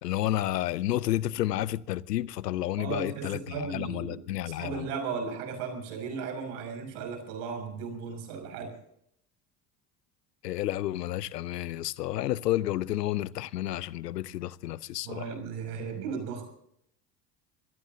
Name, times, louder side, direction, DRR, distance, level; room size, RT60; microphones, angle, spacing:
voice 1, 0.0-4.9 10.4-15.3, left 14 dB, 90° left, 0.7 m, -31 dB
voice 2, 2.8-8.7 15.0-16.5, right 5 dB, 70° right, 6.3 m, -36 dB
26.0 x 17.5 x 2.7 m
hypercardioid pair, 70°, 47 cm